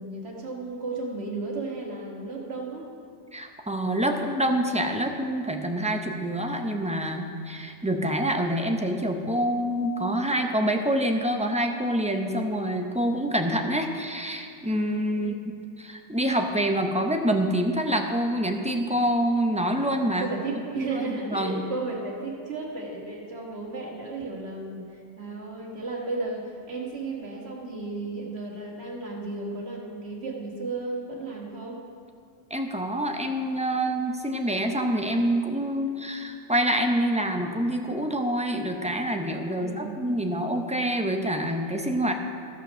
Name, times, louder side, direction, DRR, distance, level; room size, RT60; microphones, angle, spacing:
voice 1, 0.0-2.8 7.9-8.2 15.2-15.3 20.2-31.8 39.5-40.0, right 3 dB, 60° right, -1 dB, 1.8 m, -34 dB
voice 2, 3.3-20.3 20.8-21.6 32.5-42.1, right 1 dB, 10° right, 3 dB, 0.5 m, -26 dB
14.0 x 5.8 x 6.2 m, 2.3 s
omnidirectional pair, 1.2 m